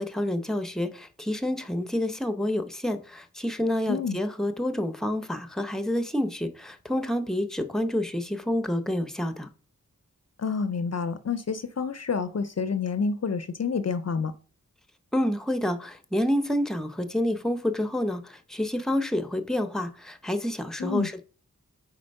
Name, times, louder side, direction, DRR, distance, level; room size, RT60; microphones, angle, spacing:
voice 1, 0.0-9.5 15.1-21.2, left 1 dB, ahead, 0.7 m, -28 dB
voice 2, 10.4-14.3 20.8-21.1, left 5 dB, 50° left, 0.5 m, -28 dB
4.3 x 4.1 x 5.2 m
wide cardioid pair, 55°, 33 cm